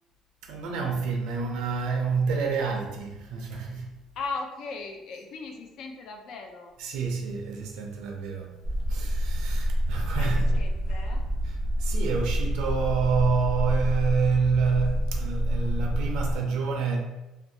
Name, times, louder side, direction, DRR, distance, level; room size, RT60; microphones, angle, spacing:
voice 1, 0.4-3.9 6.8-8.6 8.9-10.6 11.4-17.0, right 5 dB, 80° right, 0.4 m, -28 dB
voice 2, 4.1-6.7 10.1-11.2, left 4 dB, 55° left, 0.4 m, -38 dB
sound 1, 8.6-16.4, equal, 30° left, 1.3 m, -27 dB
2.5 x 2.2 x 2.6 m
cardioid pair, 155°, 0 cm